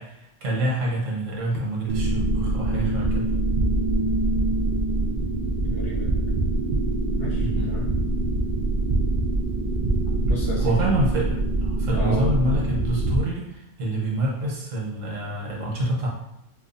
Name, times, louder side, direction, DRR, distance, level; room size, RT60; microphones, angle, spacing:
voice 1, 0.0-3.3 7.4-7.7 10.6-16.1, right 1 dB, 85° right, -3 dB, 1.3 m, -26 dB
sound 1, 1.9-13.2, right 2 dB, 60° right, 0.5 m, -24 dB
voice 2, 5.6-6.2 7.2-7.9 10.1-10.8 11.9-12.4, left 2 dB, 55° left, -4 dB, 1.0 m, -32 dB
4.6 x 2.3 x 2.6 m, 0.86 s
omnidirectional pair, 1.3 m